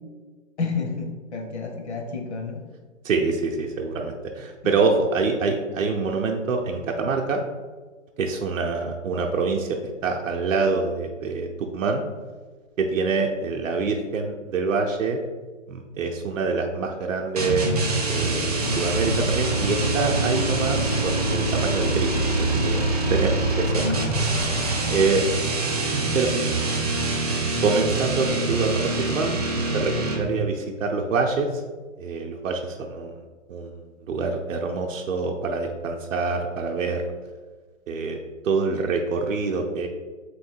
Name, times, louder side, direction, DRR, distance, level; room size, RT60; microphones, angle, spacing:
voice 1, 0.6-2.6, left 4 dB, 60° left, 3 dB, 0.8 m, -30 dB
voice 2, 3.0-7.4 8.2-12.0 12.8-15.2 15.7-22.1 22.4-22.8 23.1-24.6 24.9-25.3 25.9-26.3 27.6-29.4 29.7-31.6 32.0-33.2 33.5-33.7 34.1-37.0 37.9-39.9, right 4 dB, 85° right, 2 dB, 0.6 m, -26 dB
sound 1, 17.4-30.4, right 2 dB, 30° right, 0.5 m, -25 dB
sound 2, 18.6-25.1, left 2 dB, 45° left, 0.4 m, -34 dB
3.1 x 2.8 x 4.4 m, 1.4 s
hypercardioid pair, 165°, 38 cm